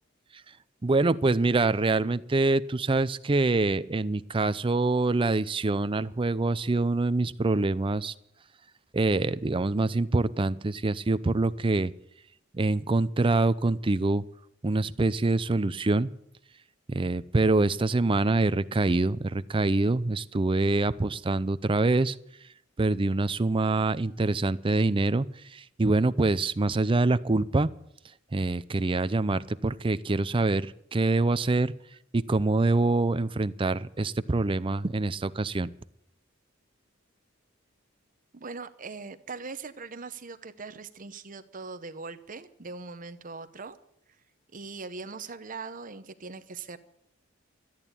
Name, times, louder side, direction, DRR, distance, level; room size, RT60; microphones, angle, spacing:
voice 1, 0.8-8.1 8.9-11.9 12.5-14.2 14.6-16.1 16.9-22.2 22.8-25.3 25.5-27.7 28.3-30.7 30.9-31.7 32.1-35.7, right 2 dB, 25° right, 15 dB, 0.5 m, -25 dB
voice 2, 38.3-43.8 44.1-44.2 44.5-46.8, right 4 dB, 45° right, 11 dB, 0.8 m, -41 dB
13.5 x 9.0 x 9.9 m, 0.75 s
head